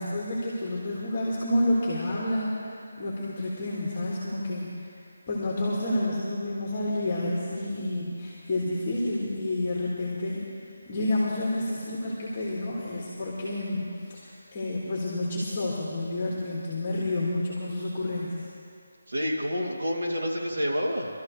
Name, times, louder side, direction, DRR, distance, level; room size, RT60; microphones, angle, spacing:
voice 1, 0.0-4.9 5.3-10.4 10.9-13.9 14.1-18.4, left 1 dB, 25° left, -6 dB, 1.8 m, -29 dB
voice 2, 19.1-21.1, equal, 80° right, -2 dB, 2.4 m, -28 dB
23.5 x 13.0 x 3.1 m, 2.5 s
figure-of-eight pair, 175°, 0 cm